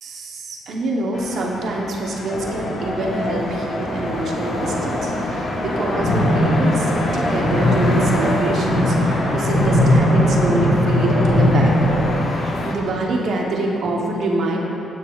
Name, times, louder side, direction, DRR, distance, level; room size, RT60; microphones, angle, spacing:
voice 1, 0.0-14.6, right 2 dB, 65° right, -1 dB, 0.8 m, -25 dB
sound 1, 1.1-12.7, left 2 dB, 50° left, 0.6 m, -31 dB
sound 2, 2.3-12.2, left 1 dB, 35° left, 1.2 m, -20 dB
7.8 x 6.3 x 2.3 m, 2.9 s
cardioid pair, 90°, 0 cm